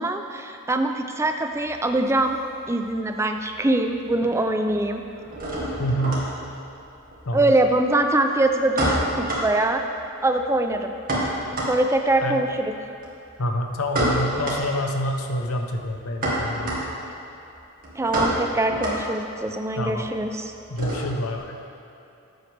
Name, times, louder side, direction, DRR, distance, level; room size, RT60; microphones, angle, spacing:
voice 1, 0.0-2.4 2.7-5.0 7.3-9.8 10.2-10.9 11.7-12.7 18.0-20.5, right 2 dB, 10° right, 5 dB, 0.5 m, -23 dB
sound 1, 1.5-3.1 3.4-4.1 4.3-21.4, right 1 dB, 40° right, 1.9 m, -29 dB
voice 2, 5.8-6.2 7.3-7.5 12.2-12.4 13.4-16.9 19.8-20.0 20.7-21.6, equal, 75° left, 3 dB, 0.9 m, -27 dB
13.0 x 8.0 x 3.4 m, 2.9 s
head